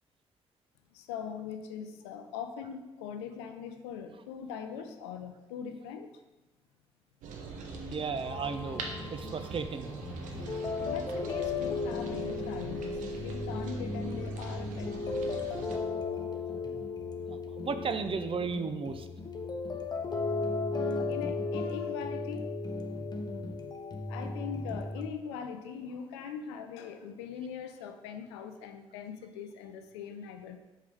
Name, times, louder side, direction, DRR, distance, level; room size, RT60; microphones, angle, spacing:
voice 1, 0.9-6.1 7.5-7.9 10.6-15.6 16.5-16.6 20.6-22.5 24.1-30.6, left 7 dB, 85° left, 7 dB, 0.5 m, -41 dB
sound 1, 7.2-15.8, right 4 dB, 70° right, 0.8 m, -42 dB
voice 2, 7.9-8.8 9.1-9.9 17.3-19.1, right 5 dB, 40° right, 9 dB, 0.6 m, -34 dB
sound 2, 8.3-25.1, left 3 dB, 30° left, 0.8 m, -35 dB
5.5 x 4.8 x 3.5 m, 1.1 s
hypercardioid pair, 45°, 14 cm